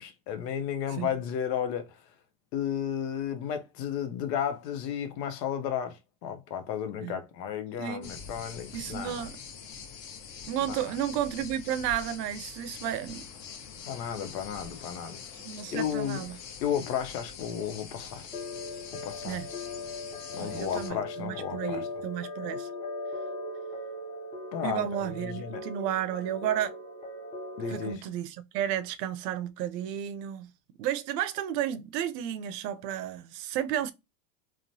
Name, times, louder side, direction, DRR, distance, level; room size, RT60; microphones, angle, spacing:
voice 1, 0.0-2.0 2.5-9.3 10.7-11.0 13.9-15.2 15.7-16.2 16.6-18.3 18.9-19.4 20.3-21.9 24.5-25.6 27.6-28.0, left 8 dB, 85° left, 0.7 m, -33 dB
voice 2, 7.8-8.1 8.7-9.3 10.5-13.2 15.4-16.4 19.3-19.5 20.4-22.7 24.6-26.8 27.7-30.5 30.8-33.9, right 10 dB, 80° right, 0.6 m, -32 dB
sound 1, 8.0-20.9, left 6 dB, 45° left, 0.9 m, -44 dB
sound 2, 18.3-27.9, left 2 dB, 15° left, 0.4 m, -39 dB
3.0 x 2.0 x 2.6 m
supercardioid pair, 120°, 48 cm